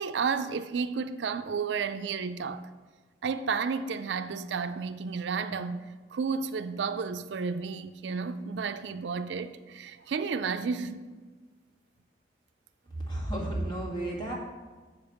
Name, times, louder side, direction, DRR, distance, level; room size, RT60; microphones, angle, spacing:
voice 1, 0.0-2.7 3.2-11.0, right 5 dB, 80° right, 0.4 m, -32 dB
voice 2, 13.0-14.3, right 1 dB, 25° left, 2.0 m, -32 dB
7.2 x 5.2 x 7.0 m
head